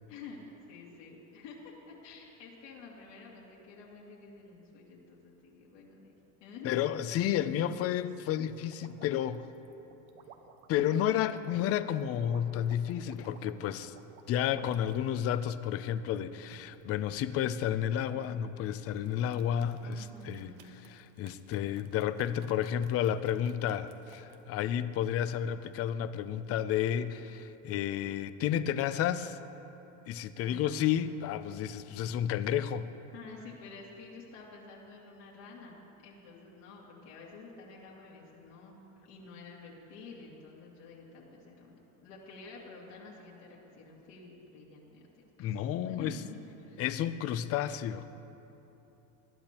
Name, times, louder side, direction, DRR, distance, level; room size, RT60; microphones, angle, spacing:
voice 1, 0.1-0.4 0.7-6.1 6.4-6.8 19.8-20.7 30.4-30.9 33.1-35.8 36.0-45.5 45.8-46.8, left 4 dB, 70° left, -4 dB, 2.3 m, -50 dB
voice 2, 6.6-9.5 10.7-13.9 14.3-29.4 30.1-32.9 45.4-46.2 46.8-48.1, left 10 dB, 35° left, 13 dB, 0.5 m, -31 dB
sound 1, 8.7-15.0 15.5-16.8 18.0-18.6 19.0-24.4, right 8 dB, 80° right, 1.1 m, -55 dB
20.0 x 11.5 x 2.9 m, 3.0 s
supercardioid pair, 120°, 42 cm